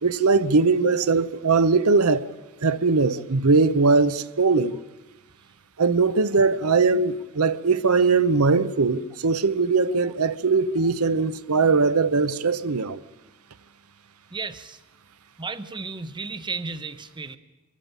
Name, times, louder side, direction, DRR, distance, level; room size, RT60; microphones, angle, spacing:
voice 1, 0.0-2.2 2.6-4.8 5.8-13.0, right 4 dB, 85° right, 0.8 m, -20 dB
voice 2, 14.3-14.8 15.4-17.4, right 4 dB, 20° right, 0.9 m, -34 dB
23.5 x 13.5 x 9.0 m
head